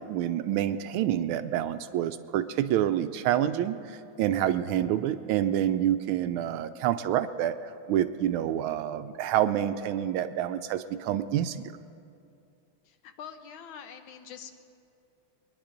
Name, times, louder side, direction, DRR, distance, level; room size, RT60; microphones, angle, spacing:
voice 1, 0.0-11.7, right 11 dB, 80° right, 11 dB, 1.3 m, -28 dB
voice 2, 12.8-14.5, left 8 dB, 70° left, 7 dB, 1.5 m, -45 dB
21.5 x 10.5 x 5.1 m, 2.5 s
omnidirectional pair, 2.4 m